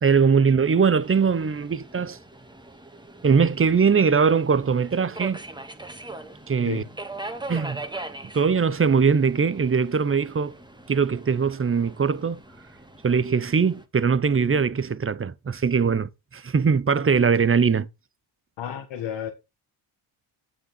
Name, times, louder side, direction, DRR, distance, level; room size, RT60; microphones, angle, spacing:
voice 1, 0.0-2.2 3.2-5.4 6.5-6.8 7.5-7.8 8.3-10.5 10.9-12.4 13.0-17.9, right 6 dB, 25° right, 0.9 m, -21 dB
Subway metro underground, 1.0-13.8, right 2 dB, 10° right, 2.1 m, -41 dB
voice 2, 18.6-19.3, left 9 dB, 70° left, 2.0 m, -32 dB
8.7 x 7.3 x 4.5 m
supercardioid pair, 60°, 48 cm